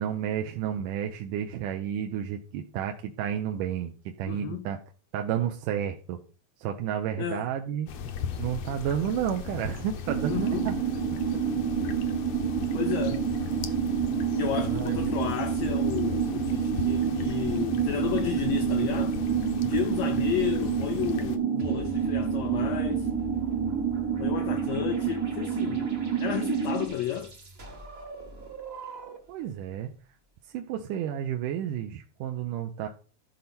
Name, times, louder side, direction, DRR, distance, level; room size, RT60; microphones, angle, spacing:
voice 1, 0.0-4.8 5.1-6.2 6.6-7.9 8.4-10.8 14.6-15.1 29.3-29.9 30.5-32.9, right 9 dB, 75° right, 2.3 m, -31 dB
voice 2, 4.3-4.7 7.2-7.5 10.3-10.7 12.7-13.2 14.3-19.2 19.7-23.1 24.2-25.9 26.2-27.3, left 11 dB, 80° left, 1.5 m, -32 dB
sound 1, 7.9-21.4, left 7 dB, 65° left, 1.8 m, -37 dB
sound 2, 10.1-26.9, right 8 dB, 55° right, 1.0 m, -28 dB
sound 3, 21.6-29.4, right 1 dB, 30° right, 1.1 m, -42 dB
13.5 x 5.4 x 4.3 m
omnidirectional pair, 3.9 m